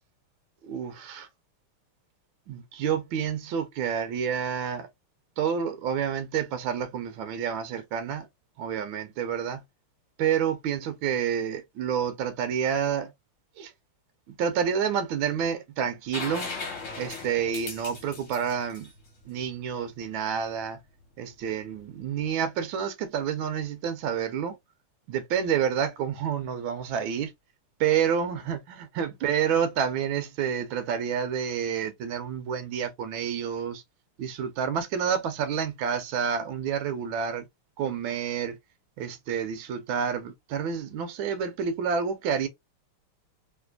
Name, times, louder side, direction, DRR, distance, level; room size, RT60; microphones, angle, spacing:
voice 1, 0.6-1.3 2.5-4.9 5.4-8.3 8.6-9.6 10.2-13.1 13.6-13.7 14.4-16.5 17.0-18.9 19.2-20.8 21.2-24.6 25.1-27.3 27.8-33.8 34.2-37.5 37.8-38.6 39.0-42.5, right 7 dB, 70° right, 1.5 m, -29 dB
sound 1, 16.1-19.8 21.7-21.8, left 3 dB, 40° left, 1.5 m, -38 dB
3.3 x 3.2 x 2.3 m
omnidirectional pair, 2.4 m